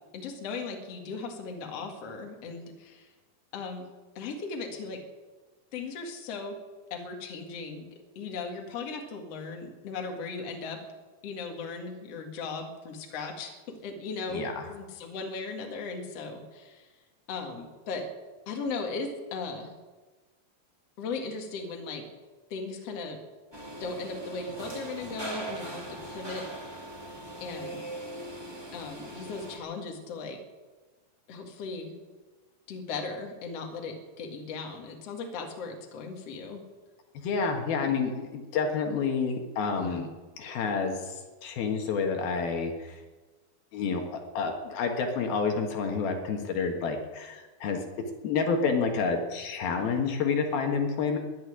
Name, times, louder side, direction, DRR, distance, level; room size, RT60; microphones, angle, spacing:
voice 1, 0.1-3.1 3.5-3.9 4.2-5.0 5.7-6.6 6.9-7.9 8.2-10.8 11.2-16.9 17.3-18.1 18.5-19.7 21.0-22.0 22.5-23.2 23.8-26.5 27.4-27.8 28.7-30.4 31.3-31.9 32.7-36.6 37.8-37.9 39.7-40.1, left 4 dB, 45° left, 2 dB, 2.5 m, -37 dB
voice 2, 14.3-14.6 37.1-40.1 40.4-43.0 43.7-47.8 48.2-51.2, left 5 dB, 70° left, 3 dB, 3.3 m, -29 dB
sound 1, 23.5-29.6, right 1 dB, 35° right, 0.4 m, -40 dB
13.0 x 11.0 x 9.9 m, 1.3 s
omnidirectional pair, 4.6 m